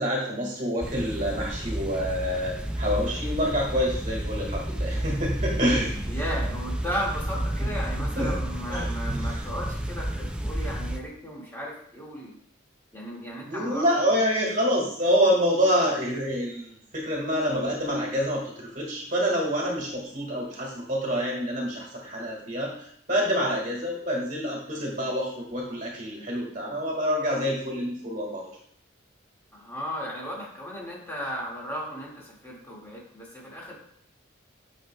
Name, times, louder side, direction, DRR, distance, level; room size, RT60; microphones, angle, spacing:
voice 1, 0.0-5.9 7.6-7.7 8.2-8.4 8.7-9.4 13.3-28.4, equal, 40° right, -2 dB, 1.7 m, -27 dB
sound 1, 0.8-11.0, right 1 dB, 5° right, 0.3 m, -31 dB
voice 2, 6.1-12.4 12.9-14.1 29.5-33.8, equal, 10° left, -4 dB, 1.9 m, -35 dB
9.1 x 6.3 x 2.2 m, 0.66 s
head